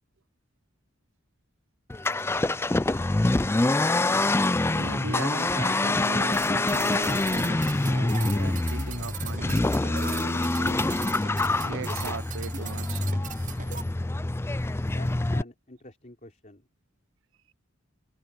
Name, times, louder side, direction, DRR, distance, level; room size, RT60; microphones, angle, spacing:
Accelerating revving vroom, 1.9-15.4, left 2 dB, 10° left, 0.4 m, -26 dB
voice 1, 4.7-10.8 11.5-13.0, right 5 dB, 75° right, 0.6 m, -39 dB
sound 1, 6.3-13.8, right 8 dB, 40° right, 0.7 m, -40 dB
voice 2, 14.8-16.7, left 2 dB, 40° left, 4.1 m, -47 dB
head